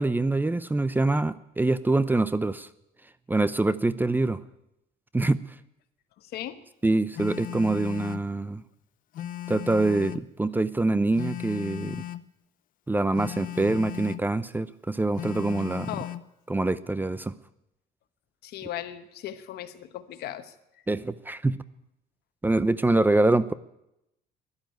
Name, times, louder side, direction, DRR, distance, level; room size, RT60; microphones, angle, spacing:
voice 1, 0.0-2.7 3.3-4.4 5.1-5.4 6.8-8.6 9.5-12.0 12.9-15.9 16.5-17.3 20.9-21.6 22.4-23.5, right 2 dB, 10° right, 16 dB, 0.6 m, -25 dB
voice 2, 6.2-6.6 15.9-16.2 18.4-20.5, left 12 dB, 75° left, 11 dB, 1.2 m, -37 dB
Telephone, 7.1-8.3 9.1-10.3 11.1-12.3 13.1-14.3 15.1-16.3, left 12 dB, 55° left, 0.6 m, -36 dB
13.5 x 11.5 x 9.3 m, 0.87 s
cardioid pair, 110°, 17 cm